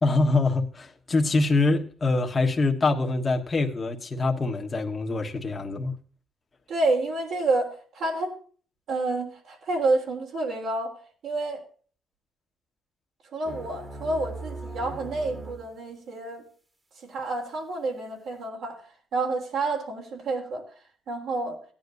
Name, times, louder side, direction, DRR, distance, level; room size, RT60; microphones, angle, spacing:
voice 1, 0.0-5.9, left 3 dB, 30° left, 1.4 m, -24 dB
voice 2, 6.7-8.3 8.9-11.0 11.2-11.6 13.3-16.4 17.0-18.8 19.1-20.6 21.1-21.6, right 2 dB, 75° right, 3.4 m, -29 dB
sound 1, 13.4-15.7, right 2 dB, 20° right, 1.6 m, -39 dB
17.0 x 10.0 x 2.6 m
cardioid pair, 90°, 0 cm